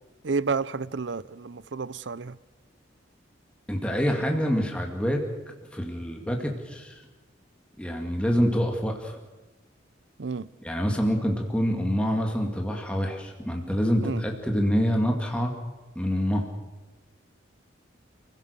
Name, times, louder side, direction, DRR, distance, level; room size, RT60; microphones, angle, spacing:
voice 1, 0.2-2.4 10.2-10.5 14.0-14.2, right 4 dB, 70° right, 0.6 m, -30 dB
voice 2, 3.7-5.2 5.7-7.0 7.8-9.2 10.6-15.5 16.0-16.5, equal, 5° left, 2.3 m, -26 dB
29.0 x 16.5 x 6.8 m
head